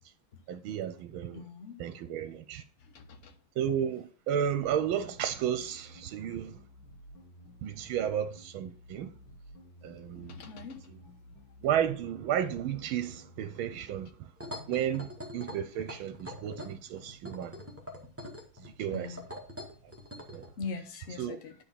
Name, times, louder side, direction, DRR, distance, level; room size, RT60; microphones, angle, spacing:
voice 1, 0.5-1.4 1.8-2.6 3.6-6.6 7.6-9.1 9.8-10.5 10.9-11.0 11.6-14.3 14.7-17.5 18.6-19.2 20.2-20.4 21.2-21.4, right 9 dB, 85° right, 1.5 m, -33 dB
voice 2, 1.3-1.8 2.9-3.3 10.1-10.9 18.9-19.2 20.6-21.5, left 5 dB, 45° left, 1.2 m, -41 dB
sound 1, 4.4-14.1, left 1 dB, 80° left, 2.3 m, -53 dB
sound 2, 14.4-20.5, left 1 dB, 5° right, 1.8 m, -44 dB
10.5 x 4.6 x 5.8 m
omnidirectional pair, 2.2 m